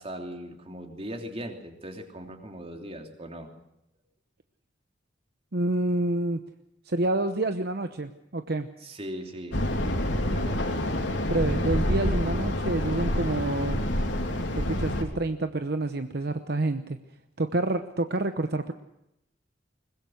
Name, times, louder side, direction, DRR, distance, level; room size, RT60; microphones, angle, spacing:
voice 1, 0.0-3.5 8.8-9.6 9.9-10.8, equal, 30° right, 4 dB, 3.0 m, -39 dB
voice 2, 5.5-6.4 6.9-8.7 11.3-13.8 14.6-17.0 17.4-18.7, right 2 dB, 60° right, 8 dB, 0.9 m, -28 dB
sound 1, 9.5-15.0, left 1 dB, 80° left, 3.2 m, -27 dB
22.0 x 20.5 x 6.4 m, 0.84 s
head